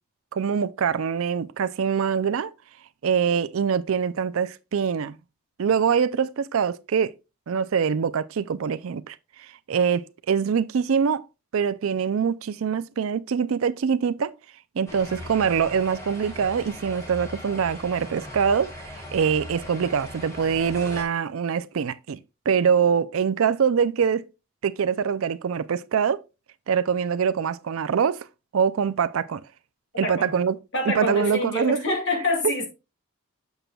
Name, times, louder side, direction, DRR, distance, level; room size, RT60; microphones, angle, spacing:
voice 1, 0.3-2.5 3.0-5.2 5.6-7.1 7.5-11.3 11.5-14.4 14.8-22.2 22.5-24.2 24.6-26.2 26.7-28.3 28.5-29.4 30.0-30.6 30.9-31.8, right 6 dB, 70° right, 0.4 m, -24 dB
sound 1, 14.9-21.0, left 1 dB, 15° left, 1.5 m, -39 dB
voice 2, 30.0-30.3 30.7-32.7, left 2 dB, 55° left, 2.2 m, -26 dB
7.9 x 6.7 x 2.3 m
head